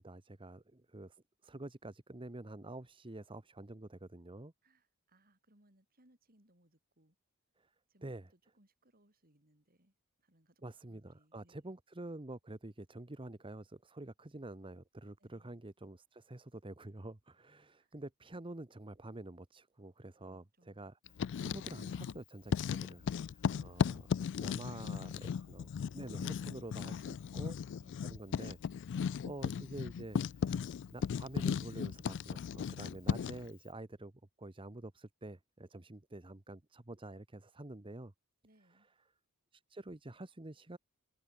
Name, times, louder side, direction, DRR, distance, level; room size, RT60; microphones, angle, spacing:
voice 1, 0.0-4.5 7.6-7.7 8.0-8.3 10.6-21.0 21.4-24.1 24.4-27.6 28.0-28.6 28.9-34.1 34.4-38.1 39.5-40.8, right 2 dB, 25° right, 1.0 m, -48 dB
voice 2, 4.6-7.2 7.9-11.8 15.2-15.6 17.8-18.0 20.2-20.9 23.5-24.1 24.6-25.3 26.2-27.3 27.8-28.0 38.4-38.9, right 1 dB, 40° right, 7.1 m, -70 dB
Writing, 21.1-22.2 22.5-33.5, left 7 dB, 55° left, 0.3 m, -36 dB
head